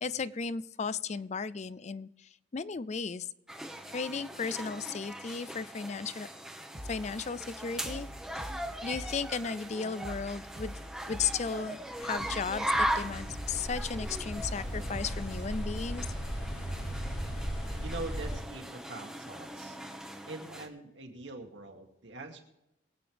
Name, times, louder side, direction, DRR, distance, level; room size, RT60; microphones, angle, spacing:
voice 1, 0.0-3.3 3.9-6.3 6.9-8.1 8.3-8.5 8.8-10.8 11.1-16.1, left 5 dB, 35° left, 17 dB, 0.4 m, -35 dB
sound 1, 3.5-20.7, right 1 dB, 5° right, 1.0 m, -39 dB
sound 2, 6.7-15.7, equal, 35° right, 2.1 m, -46 dB
sound 3, 11.9-18.4, equal, 65° left, 2.5 m, -37 dB
voice 2, 17.8-19.8 20.2-22.4, right 2 dB, 70° right, 2 dB, 2.2 m, -43 dB
23.0 x 9.0 x 3.4 m, 0.88 s
head